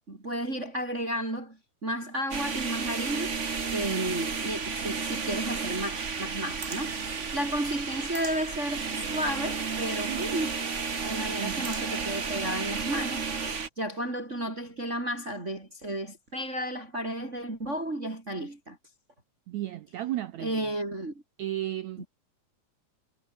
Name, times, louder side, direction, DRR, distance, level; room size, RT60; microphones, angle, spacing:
voice 1, 0.1-3.4 3.7-10.6 11.0-13.3 13.8-18.8 20.4-21.1 22.0-22.1, right 1 dB, 20° right, 4.2 m, -33 dB
sound 1, 2.3-13.7, right 5 dB, 40° right, 1.1 m, -32 dB
voice 2, 3.7-4.0 10.1-10.4 11.3-11.7 19.5-20.5 21.4-22.0, right 14 dB, 70° right, 1.9 m, -34 dB
omnidirectional pair, 4.0 m